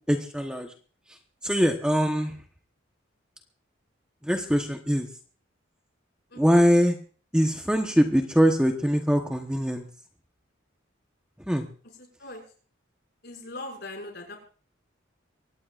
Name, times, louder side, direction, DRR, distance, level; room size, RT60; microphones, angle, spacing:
voice 1, 0.1-0.7 1.4-2.3 4.2-5.1 6.4-7.0 7.3-9.8 11.5-11.6, equal, 5° right, 3 dB, 1.1 m, -22 dB
voice 2, 6.3-6.6 12.0-12.4 13.2-14.4, left 2 dB, 55° left, 1 dB, 6.3 m, -40 dB
24.0 x 18.5 x 2.5 m, 0.41 s
head